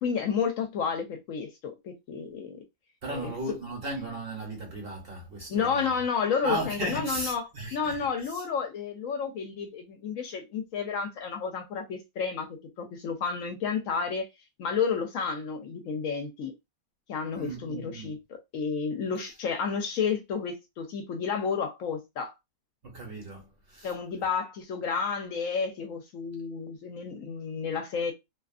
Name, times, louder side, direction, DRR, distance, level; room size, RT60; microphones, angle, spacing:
voice 1, 0.0-2.6 3.1-3.3 5.5-7.4 7.7-14.3 14.6-16.5 17.1-18.2 18.5-22.3 23.8-28.1, left 6 dB, 70° left, 1.0 m, -31 dB
voice 2, 3.0-5.9 6.4-8.4 17.3-18.1 22.8-23.9, right 2 dB, 45° right, 1.0 m, -36 dB
2.7 x 2.4 x 2.4 m
omnidirectional pair, 1.5 m